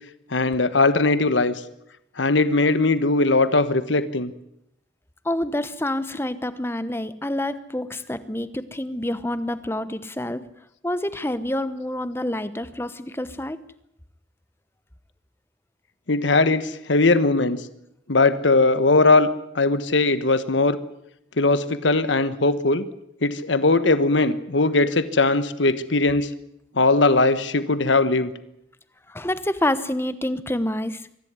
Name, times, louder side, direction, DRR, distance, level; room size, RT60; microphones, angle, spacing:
voice 1, 0.3-1.6 2.2-4.3 16.1-17.6 18.1-19.3 19.5-20.8 21.4-22.8 23.2-26.3 26.8-28.3, left 3 dB, 80° left, 13 dB, 1.3 m, -19 dB
voice 2, 5.2-10.4 10.8-13.6 29.1-31.0, left 1 dB, 10° left, 14 dB, 1.0 m, -27 dB
24.0 x 14.5 x 9.7 m, 0.80 s
head